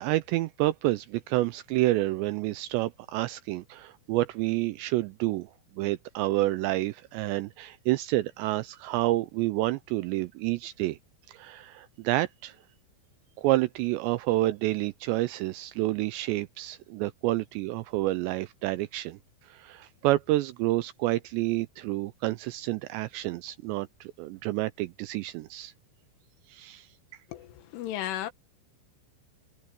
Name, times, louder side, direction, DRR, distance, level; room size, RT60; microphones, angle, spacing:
voice 1, 0.0-5.5 5.8-11.0 11.3-12.6 13.4-19.2 19.4-25.7 26.5-26.9, right 17 dB, 85° right, 2.6 m, -29 dB
voice 2, 27.3-28.3, left 12 dB, 85° left, 3.9 m, -34 dB
omnidirectional pair, 5.5 m